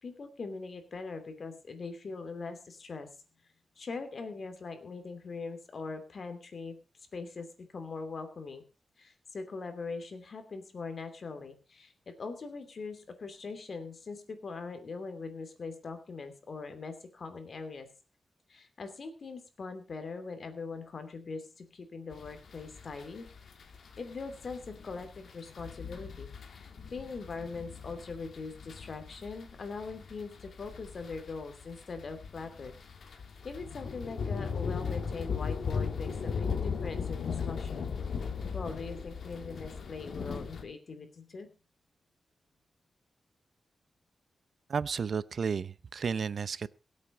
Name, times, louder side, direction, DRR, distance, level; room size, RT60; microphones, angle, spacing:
voice 1, 0.0-3.1 3.8-6.8 7.1-7.5 7.7-8.6 9.0-17.9 18.5-23.2 24.0-32.7 33.4-37.9 38.5-41.5, left 4 dB, 50° left, 8 dB, 2.9 m, -41 dB
sound 1, 22.1-40.6, left 6 dB, 70° left, 2.4 m, -38 dB
voice 2, 44.7-46.7, right 6 dB, 60° right, 18 dB, 0.6 m, -32 dB
23.0 x 8.5 x 4.0 m, 0.32 s
wide cardioid pair, 155°, 0 cm